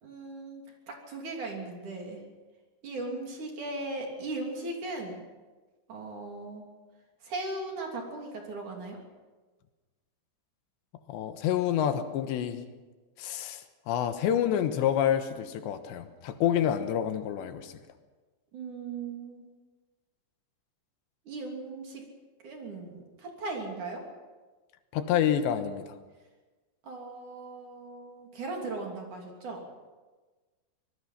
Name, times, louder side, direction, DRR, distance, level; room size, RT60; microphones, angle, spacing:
voice 1, 0.0-2.2 2.8-5.2 5.9-6.7 7.2-9.0 18.5-19.5 21.3-22.1 22.4-24.0 26.8-29.6, right 2 dB, 45° right, 1 dB, 4.2 m, -38 dB
voice 2, 11.1-12.6 13.2-17.7 24.9-25.9, left 10 dB, 80° left, 8 dB, 3.4 m, -28 dB
25.0 x 20.0 x 5.8 m, 1.3 s
omnidirectional pair, 5.0 m